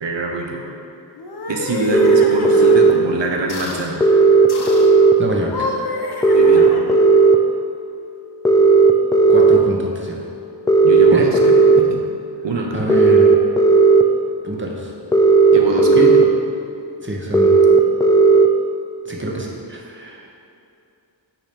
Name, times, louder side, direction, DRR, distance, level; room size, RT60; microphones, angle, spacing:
voice 1, 0.0-0.6 1.5-4.0 6.3-6.8 10.8-12.0 12.4-12.9 15.5-16.3, right 3 dB, 65° right, 1 dB, 1.0 m, -24 dB
sound 1, 1.1-2.8 3.5-3.9 4.5-4.9 5.4-7.1, left 2 dB, 55° left, 0.8 m, -29 dB
sound 2, 1.9-2.9 4.0-5.1 6.2-7.4 8.4-9.6 10.7-11.8 12.9-14.0 15.1-16.2 17.3-18.5, right 4 dB, 10° left, 0.3 m, -12 dB
voice 2, 5.2-5.7 9.3-10.3 11.1-11.2 12.7-13.3 14.4-14.9 15.9-16.1 17.0-17.6 19.1-20.4, right 1 dB, 25° right, -2 dB, 1.1 m, -25 dB
8.6 x 3.0 x 5.1 m, 2.7 s
wide cardioid pair, 55°, 46 cm